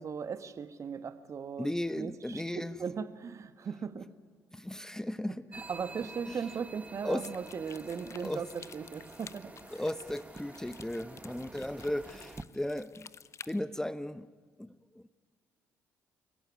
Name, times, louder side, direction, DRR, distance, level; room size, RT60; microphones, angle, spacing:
voice 1, 0.0-4.1 5.5-9.5, right 6 dB, 45° right, 11 dB, 1.6 m, -38 dB
voice 2, 1.6-2.7 4.5-5.4 6.3-6.4 7.0-7.2 7.9-8.4 9.7-13.1 13.5-14.3 14.6-15.1, left 1 dB, 5° left, 15 dB, 0.9 m, -36 dB
sound 1, 5.5-12.4, right 3 dB, 20° right, 1.3 m, -49 dB
sound 2, 7.1-13.6, left 6 dB, 40° left, 0.9 m, -52 dB
29.5 x 17.0 x 9.7 m, 1.5 s
figure-of-eight pair, 45°, 8 cm